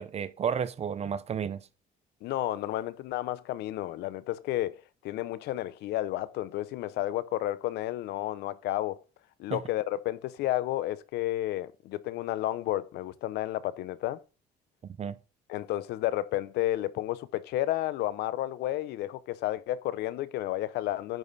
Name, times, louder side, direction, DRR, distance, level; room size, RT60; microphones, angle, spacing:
voice 1, 0.0-1.6 9.5-9.6 14.8-15.2, right 7 dB, 40° right, 0.7 m, -32 dB
voice 2, 2.2-4.8 5.0-9.0 9.4-14.2 15.5-21.2, left 14 dB, 80° left, 0.7 m, -31 dB
9.3 x 5.2 x 4.1 m
cardioid pair, 110°, 17 cm